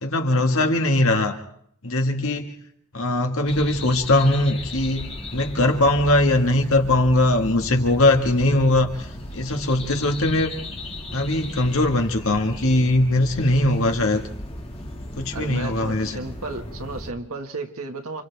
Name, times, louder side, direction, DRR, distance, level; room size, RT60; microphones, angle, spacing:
voice 1, 0.0-1.4 1.8-2.5 2.9-5.1 5.3-9.1 9.3-10.5 11.1-14.2 15.2-16.2, left 1 dB, 65° left, 4 dB, 2.0 m, -20 dB
sound 1, 3.5-17.1, left 1 dB, 25° left, 2.3 m, -36 dB
voice 2, 15.3-18.2, right 2 dB, 70° right, 3 dB, 1.9 m, -33 dB
29.5 x 26.5 x 3.5 m, 0.68 s
head